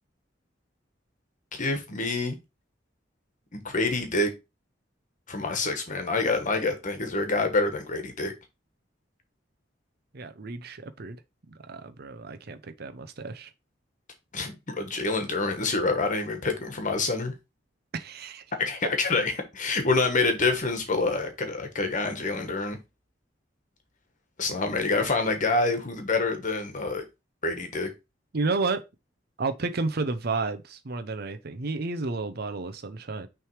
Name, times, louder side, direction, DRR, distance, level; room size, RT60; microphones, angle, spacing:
voice 1, 1.5-2.4 3.5-4.3 5.3-8.3 14.3-17.3 18.6-22.8 24.4-27.0 27.4-27.9, left 3 dB, 45° left, 1.3 m, -27 dB
voice 2, 10.1-11.2 11.5-13.5 17.9-18.4 28.3-28.8 29.4-33.3, right 3 dB, 55° right, 0.7 m, -31 dB
6.1 x 3.4 x 4.7 m
head